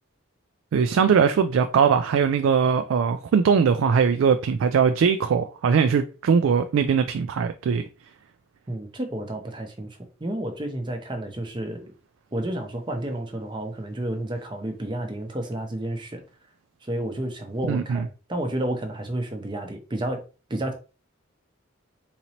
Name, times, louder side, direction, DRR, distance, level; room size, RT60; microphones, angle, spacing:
voice 1, 0.7-7.8 17.7-18.1, right 6 dB, 75° right, 0.3 m, -21 dB
voice 2, 8.7-9.9 10.2-11.9 12.3-16.2 16.8-20.2 20.5-20.7, right 1 dB, 25° right, 0.6 m, -31 dB
3.9 x 2.9 x 2.8 m
head